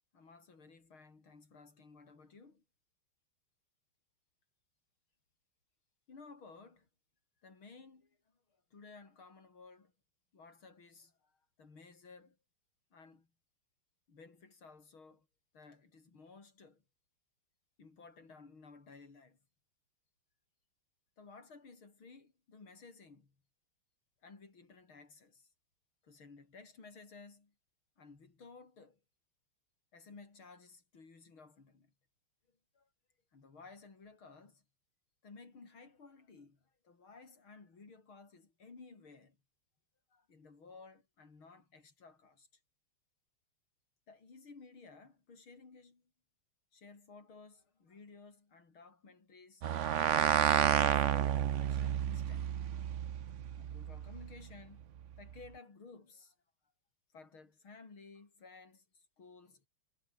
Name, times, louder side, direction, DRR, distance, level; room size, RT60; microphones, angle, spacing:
voice 1, 0.1-2.6 6.1-6.9 7.4-8.2 8.7-9.9 10.3-12.4 12.9-13.3 14.1-15.3 15.5-16.8 17.8-19.4 21.2-23.3 24.2-25.5 26.0-27.5 28.0-29.0 29.9-31.9 32.7-32.9 33.3-34.6 35.2-39.4 40.1-42.5 44.1-46.0 46.7-49.6 50.1-52.7 53.5-54.8 55.2-56.3 57.1-58.8 59.2-59.7, left 4 dB, 70° left, 5.1 m, -56 dB
sound 1, 49.6-54.3, right 10 dB, 85° right, 0.6 m, -31 dB
omnidirectional pair, 2.4 m